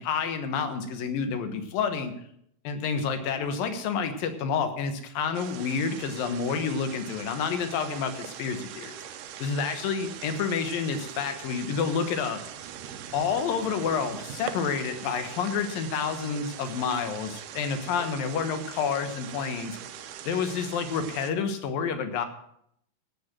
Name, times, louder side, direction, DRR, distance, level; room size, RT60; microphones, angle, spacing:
voice 1, 0.0-2.1 2.6-9.0 9.4-12.4 13.1-19.8 20.3-22.3, left 6 dB, 75° left, 8 dB, 3.0 m, -29 dB
sound 1, 5.3-21.3, right 9 dB, 75° right, 2.3 m, -42 dB
17.0 x 6.8 x 7.5 m, 0.72 s
omnidirectional pair, 4.1 m